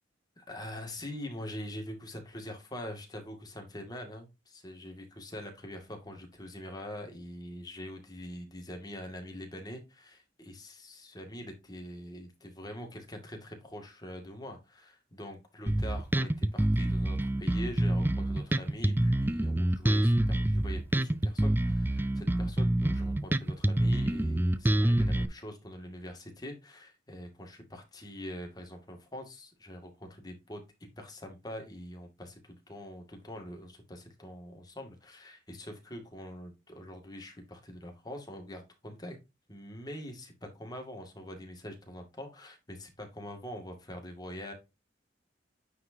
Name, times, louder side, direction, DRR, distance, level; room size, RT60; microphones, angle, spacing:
voice 1, 0.5-30.6 31.0-39.2 39.5-44.5, left 1 dB, 20° left, 3 dB, 2.1 m, -44 dB
Bass guitar, 15.7-25.3, right 1 dB, 10° right, 0.4 m, -27 dB
9.4 x 4.7 x 2.7 m, 0.24 s
head